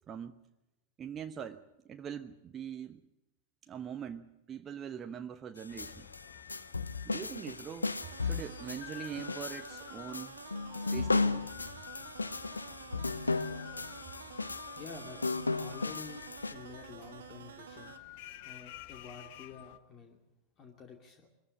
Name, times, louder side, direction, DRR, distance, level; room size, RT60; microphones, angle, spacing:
voice 1, 0.1-0.4 1.0-3.0 3.7-6.1 7.0-7.9 8.2-10.4 10.9-11.5, right 8 dB, 25° right, 7 dB, 1.0 m, -42 dB
sound 1, 5.6-16.5, left 3 dB, 80° left, 0.7 m, -35 dB
sound 2, 5.7-19.8, left 14 dB, 50° left, 1.0 m, -51 dB
sound 3, 7.9-18.0, right 8 dB, 65° right, 1.3 m, -50 dB
voice 2, 14.7-16.2 16.5-17.9 18.4-20.2 20.6-21.3, left 5 dB, 30° left, 3 dB, 2.7 m, -49 dB
23.0 x 14.5 x 9.9 m, 0.91 s
figure-of-eight pair, 90°, 0 cm